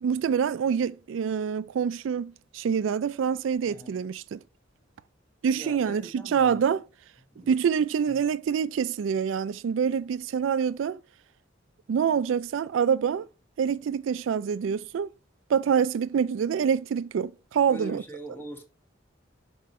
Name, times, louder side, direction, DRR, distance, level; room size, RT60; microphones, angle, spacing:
voice 1, 0.0-4.4 5.4-6.8 7.5-11.0 11.9-13.3 13.6-15.1 15.5-18.0, right 7 dB, 70° right, 0.3 m, -26 dB
voice 2, 3.6-4.0 5.5-6.8 7.3-7.5 8.1-8.3 17.7-18.6, right 1 dB, 10° left, 1.6 m, -42 dB
6.0 x 4.6 x 4.2 m
head